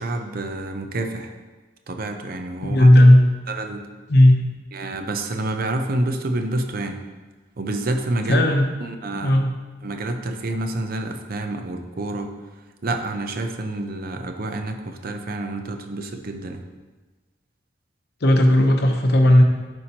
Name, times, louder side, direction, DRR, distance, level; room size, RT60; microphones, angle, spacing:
voice 1, 0.0-1.3 1.9-2.9 3.5-3.9 4.7-7.0 7.6-8.4 8.8-9.4 9.8-12.3 12.8-16.6, right 2 dB, 55° right, 5 dB, 0.6 m, -28 dB
voice 2, 2.6-3.3 4.1-4.4 8.3-8.7 9.2-9.5 18.2-19.4, left 1 dB, 60° left, 3 dB, 0.8 m, -14 dB
10.5 x 4.4 x 2.9 m, 1.3 s
head